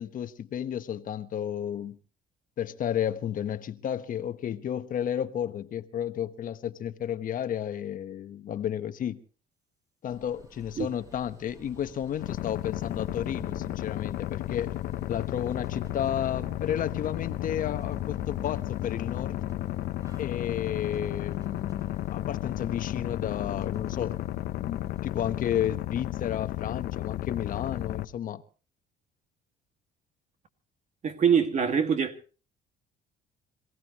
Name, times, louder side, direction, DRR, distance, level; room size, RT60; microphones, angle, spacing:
voice 1, 0.0-2.0 2.6-9.2 10.0-14.7 15.1-19.4 20.2-24.2 24.6-28.4, left 10 dB, 55° left, 1.2 m, -32 dB
sound 1, 10.1-25.4, right 1 dB, 20° right, 3.7 m, -50 dB
sound 2, 12.2-28.1, left 15 dB, 75° left, 0.9 m, -33 dB
voice 2, 31.0-32.4, right 7 dB, 45° right, 2.1 m, -24 dB
27.0 x 17.0 x 3.0 m
cardioid pair, 110°, 17 cm